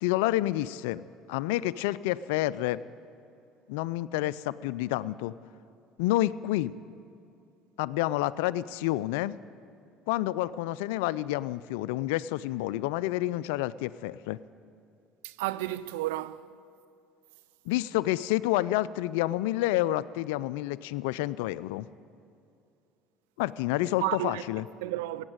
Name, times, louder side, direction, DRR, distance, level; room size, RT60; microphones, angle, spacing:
voice 1, 0.0-1.0 1.3-2.8 3.7-5.3 6.0-6.7 7.8-9.3 10.1-14.4 17.7-21.9 23.4-24.7, left 16 dB, 80° left, 0.3 m, -29 dB
voice 2, 15.2-16.4 24.0-24.4 24.8-25.2, right 16 dB, 85° right, 0.4 m, -31 dB
16.0 x 8.8 x 9.0 m
supercardioid pair, 80°, 0 cm